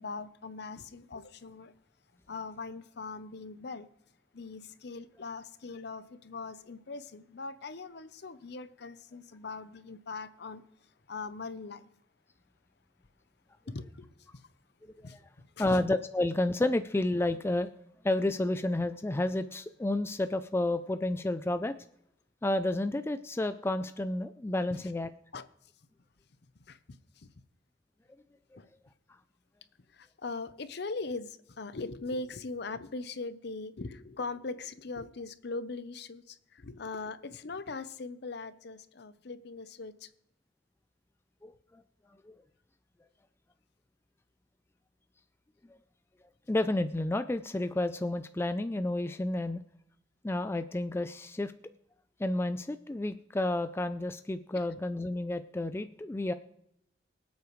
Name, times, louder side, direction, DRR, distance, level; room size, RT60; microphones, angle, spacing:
voice 1, 0.0-1.7 2.3-3.9 4.3-10.6 11.1-11.9 13.7-14.5 15.0-15.8 24.7-24.9 25.3-25.5 26.6-27.3 28.6-28.7 29.9-40.1 54.5-54.7, left 3 dB, 60° left, 0.7 m, -41 dB
voice 2, 15.6-17.7 18.0-21.8 22.4-25.1 41.4-41.5 42.2-42.3 46.5-49.6 50.2-51.5 52.2-56.3, left 1 dB, 15° left, 0.3 m, -30 dB
24.0 x 8.2 x 3.1 m
head